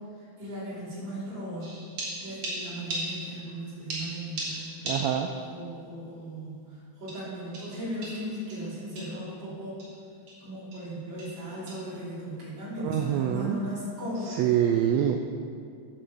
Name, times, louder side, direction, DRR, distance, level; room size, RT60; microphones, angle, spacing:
voice 1, 0.2-1.8 2.2-4.9 5.5-9.8 10.4-14.5, equal, 40° right, -8 dB, 3.8 m, -37 dB
sound 1, 1.6-3.6 3.9-5.5 5.8-5.9 7.1-9.3 9.8-9.9 10.3-10.4 10.7-10.9 11.2-11.4 11.7-11.9 12.9-13.1, right 1 dB, 55° right, 3.2 m, -38 dB
voice 2, 4.8-5.3 12.8-13.6 14.3-15.2, right 10 dB, 85° right, 4 dB, 1.5 m, -25 dB
9.6 x 6.4 x 6.9 m, 2.3 s
omnidirectional pair, 3.5 m